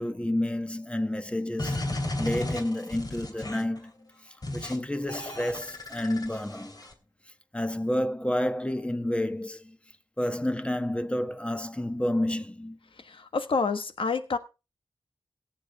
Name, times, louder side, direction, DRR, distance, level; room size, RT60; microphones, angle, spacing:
voice 1, 0.0-4.1 4.5-6.8 7.5-9.8 10.2-12.8, left 1 dB, 15° left, 1.2 m, -30 dB
sound 1, 1.6-3.8 4.4-4.8 5.1-6.9, left 1 dB, 45° left, 2.9 m, -34 dB
voice 2, 13.0-14.4, left 4 dB, 80° left, 1.3 m, -28 dB
17.0 x 8.3 x 3.6 m
cardioid pair, 50°, 9 cm